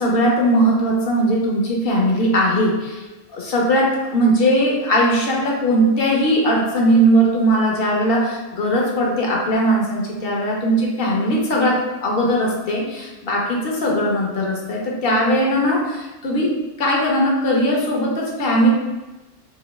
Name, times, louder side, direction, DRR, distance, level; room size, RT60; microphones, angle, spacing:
voice 1, 0.0-3.0 3.3-16.5 16.8-18.7, equal, 50° left, -2 dB, 1.0 m, -19 dB
3.1 x 2.8 x 4.0 m, 1.1 s
omnidirectional pair, 1.3 m